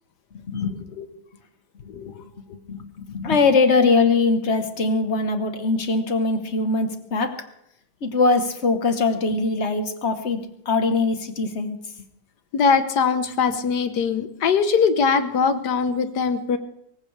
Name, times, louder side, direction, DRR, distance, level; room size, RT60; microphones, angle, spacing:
voice 1, 0.3-0.7 2.7-7.5 8.0-10.4 10.6-11.8, left 3 dB, 45° left, 8 dB, 1.5 m, -21 dB
voice 2, 1.9-2.3 12.5-16.6, left 5 dB, 80° left, 10 dB, 1.7 m, -21 dB
23.5 x 15.5 x 3.4 m, 0.76 s
omnidirectional pair, 1.8 m